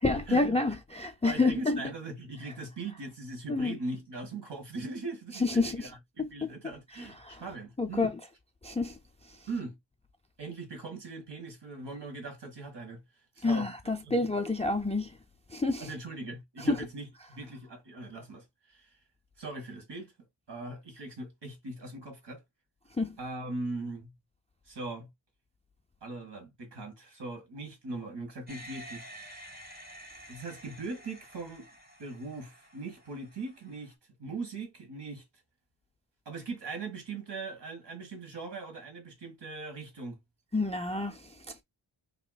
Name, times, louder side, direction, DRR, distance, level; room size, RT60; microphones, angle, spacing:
voice 1, 0.0-1.8 3.5-3.7 5.4-5.9 6.2-6.3 7.2-7.4 7.8-8.2 8.6-9.0 13.4-15.1 15.5-15.9 16.6-16.8 23.0-23.2 40.5-41.3, left 3 dB, 15° left, 0.3 m, -28 dB
voice 2, 1.2-8.1 9.5-9.8 10.4-13.0 13.4-13.7 14.0-14.1 15.8-18.9 19.4-20.1 20.5-22.4 23.2-24.1 24.7-25.1 26.0-29.0 30.3-31.7 32.0-33.9 34.2-35.2 36.3-40.2, right 3 dB, 60° right, 1.7 m, -40 dB
sound 1, 28.5-33.9, equal, 20° right, 1.7 m, -50 dB
5.4 x 2.9 x 2.3 m
wide cardioid pair, 150°, 47 cm